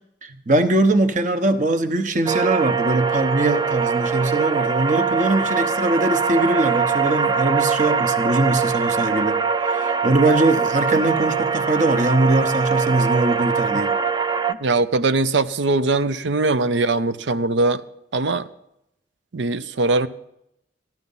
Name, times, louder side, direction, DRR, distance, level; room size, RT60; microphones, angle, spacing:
voice 1, 0.2-14.0, right 2 dB, 45° right, 1.0 m, -21 dB
sound 1, 2.3-14.5, right 5 dB, 25° right, 0.4 m, -22 dB
voice 2, 14.5-17.8 18.1-18.5 19.3-20.1, right 3 dB, 85° right, 0.6 m, -21 dB
15.0 x 12.0 x 5.5 m
head